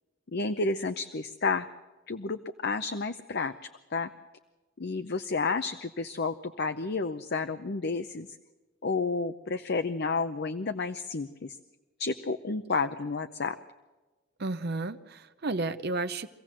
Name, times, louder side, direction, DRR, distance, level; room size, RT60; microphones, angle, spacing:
voice 1, 0.3-1.7 2.1-3.5 3.9-4.1 4.8-8.3 8.8-11.6 12.0-13.6, left 4 dB, 50° left, 9 dB, 0.7 m, -31 dB
voice 2, 14.4-16.3, right 3 dB, 50° right, 10 dB, 0.7 m, -32 dB
24.5 x 16.0 x 7.5 m, 1.2 s
head